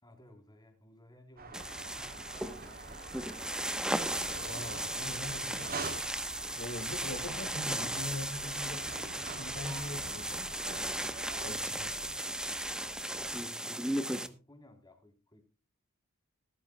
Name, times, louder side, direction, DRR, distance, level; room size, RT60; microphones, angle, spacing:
voice 1, 0.0-3.8 13.1-15.4, left 1 dB, 20° left, 3.5 m, -58 dB
sound 1, 1.4-13.4, right 3 dB, 45° right, 3.1 m, -46 dB
sound 2, 1.5-14.3, right 1 dB, 5° right, 0.9 m, -36 dB
voice 2, 4.3-11.1 11.4-11.9, left 1 dB, 55° left, 1.9 m, -43 dB
17.0 x 14.0 x 2.2 m
head